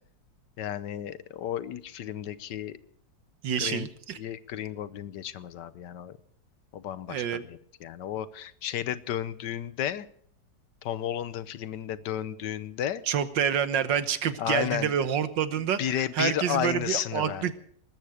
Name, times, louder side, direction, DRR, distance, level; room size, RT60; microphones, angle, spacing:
voice 1, 0.6-2.8 3.6-3.9 4.2-6.1 6.7-10.1 10.8-13.0 14.4-14.9 15.8-17.5, left 10 dB, 70° left, 15 dB, 1.4 m, -33 dB
voice 2, 3.4-4.2 7.1-7.4 13.1-17.5, right 8 dB, 75° right, 12 dB, 1.8 m, -28 dB
20.0 x 14.0 x 4.9 m, 0.62 s
omnidirectional pair, 2.0 m